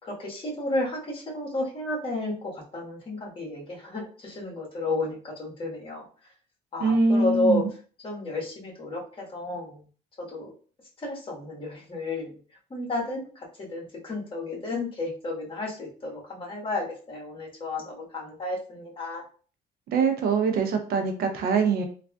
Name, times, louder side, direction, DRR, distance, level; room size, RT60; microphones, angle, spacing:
voice 1, 0.0-6.0 6.7-7.6 8.0-9.8 10.2-10.5 11.0-12.4 12.7-19.2, left 2 dB, 30° left, -3 dB, 1.4 m, -32 dB
voice 2, 6.8-7.7 19.9-21.8, right 4 dB, 65° right, 5 dB, 0.6 m, -23 dB
3.3 x 2.4 x 2.3 m, 0.40 s
cardioid pair, 110°, 17 cm